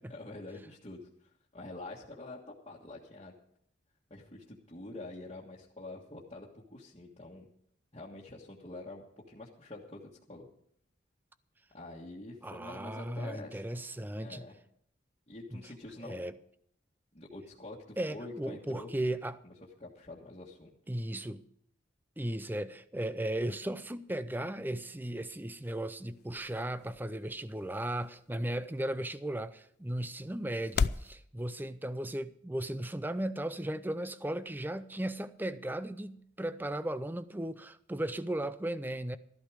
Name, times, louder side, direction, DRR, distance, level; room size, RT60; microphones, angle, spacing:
voice 1, 0.1-3.3 4.1-7.5 7.9-10.5 11.7-13.6 14.2-14.6 15.3-16.2 17.1-18.9 19.4-19.5 19.8-20.7, left 2 dB, 30° left, 1.6 m, -46 dB
voice 2, 12.4-14.5 15.5-15.6 16.0-16.4 18.0-19.4 20.9-21.4 22.2-39.2, right 1 dB, 10° right, 0.5 m, -36 dB
sound 1, 24.9-31.1, left 5 dB, 55° left, 0.4 m, -39 dB
13.5 x 12.0 x 4.9 m
head